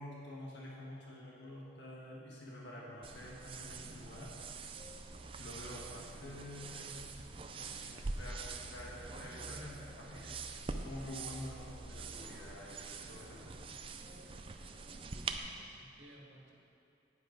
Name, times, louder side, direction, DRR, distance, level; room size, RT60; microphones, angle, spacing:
voice 1, 0.0-4.3 5.4-7.0 7.5-10.4 10.8-13.5, left 1 dB, 70° left, -4 dB, 1.5 m, -48 dB
sound 1, 3.0-15.4, right 4 dB, 30° right, 0.4 m, -45 dB
voice 2, 15.0-16.5, right 1 dB, 85° right, -2 dB, 1.8 m, -57 dB
10.0 x 9.7 x 4.0 m, 2.7 s
head